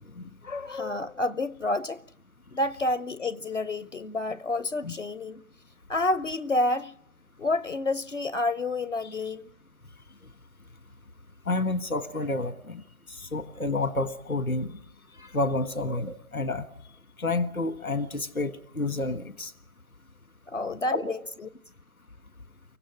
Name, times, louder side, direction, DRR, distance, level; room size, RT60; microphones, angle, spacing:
voice 1, 0.4-2.0 2.5-5.4 5.9-6.9 7.4-9.5 20.5-21.5, left 2 dB, 60° left, 0.8 m, -29 dB
voice 2, 11.5-12.8 13.2-14.7 15.2-16.7 17.2-19.5 20.9-21.1, left 2 dB, 80° left, 1.7 m, -29 dB
24.5 x 15.5 x 9.8 m
figure-of-eight pair, 170°, 42 cm